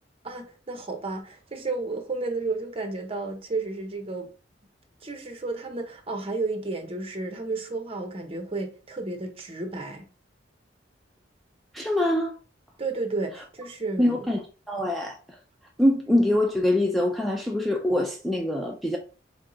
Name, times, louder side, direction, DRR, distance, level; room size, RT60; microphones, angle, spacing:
voice 1, 0.2-4.3 5.0-10.0 12.8-14.3, right 3 dB, 30° right, 0.8 m, -32 dB
voice 2, 11.7-12.3 14.0-14.4 14.7-15.2 15.8-19.0, left 1 dB, ahead, 0.5 m, -24 dB
3.7 x 3.5 x 3.9 m
head